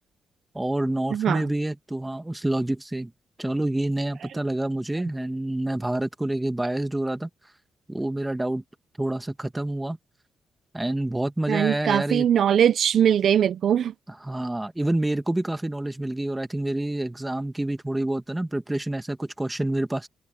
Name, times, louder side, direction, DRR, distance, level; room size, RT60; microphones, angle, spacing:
voice 1, 0.5-3.1 3.4-7.3 7.9-8.6 9.0-10.0 10.7-12.3 14.2-20.1, right 1 dB, 15° right, 2.3 m, -27 dB
voice 2, 1.1-1.5 11.5-13.9, right 9 dB, 70° right, 0.7 m, -21 dB
supercardioid pair, 60°, 0 cm